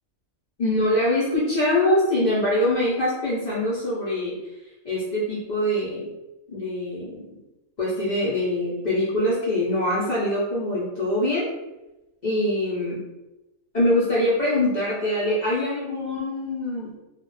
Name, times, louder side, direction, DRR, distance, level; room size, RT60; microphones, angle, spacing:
voice 1, 0.6-4.3 4.8-6.1 6.5-7.3 7.8-11.5 12.2-13.0 13.7-17.0, left 1 dB, 55° left, -8 dB, 0.5 m, -24 dB
2.4 x 2.0 x 3.1 m, 1.0 s
omnidirectional pair, 1.5 m